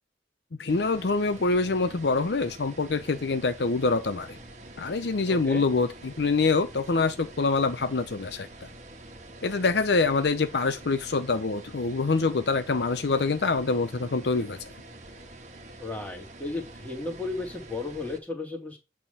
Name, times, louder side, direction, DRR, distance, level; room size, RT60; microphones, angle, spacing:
voice 1, 0.6-4.4 4.8-8.5 9.4-14.7, left 3 dB, 70° left, 0.7 m, -25 dB
sound 1, 0.7-18.2, right 2 dB, 40° right, 1.5 m, -46 dB
voice 2, 5.2-5.7 15.8-18.8, left 2 dB, 10° left, 2.0 m, -34 dB
8.7 x 3.7 x 6.7 m
head